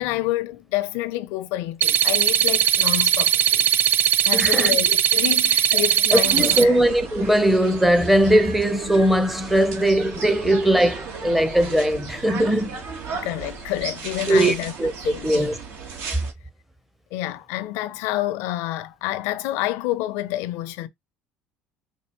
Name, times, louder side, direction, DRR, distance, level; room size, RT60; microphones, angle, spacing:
voice 1, 0.0-3.7 4.2-6.7 13.1-14.7 15.0-15.5 17.1-20.9, left 15 dB, 80° left, 0.5 m, -28 dB
sound 1, 1.8-6.6, right 10 dB, 50° right, 0.3 m, -19 dB
voice 2, 4.3-4.8 6.1-12.8 14.3-14.5 14.8-14.9 15.2-15.5, right 1 dB, 5° right, 0.7 m, -19 dB
sound 2, 6.2-16.3, right 5 dB, 65° right, 1.5 m, -35 dB
4.4 x 2.4 x 3.0 m
supercardioid pair, 100°, 4 cm